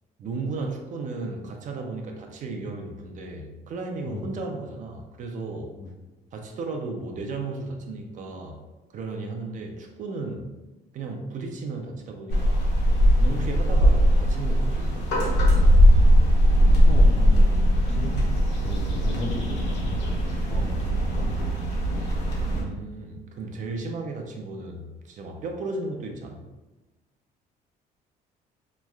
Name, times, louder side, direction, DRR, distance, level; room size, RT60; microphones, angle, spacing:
voice 1, 0.2-5.7 6.3-8.6 8.9-10.5 10.9-12.7 13.2-15.8 22.5-26.4, right 3 dB, 50° right, 3 dB, 0.4 m, -35 dB
sound 1, 12.3-22.6, equal, 80° left, 0.8 m, -20 dB
voice 2, 16.8-17.6 17.9-18.2 18.6-21.3, left 2 dB, 40° left, 2 dB, 0.5 m, -36 dB
3.0 x 2.4 x 2.2 m, 1.1 s
cardioid pair, 110°, 17 cm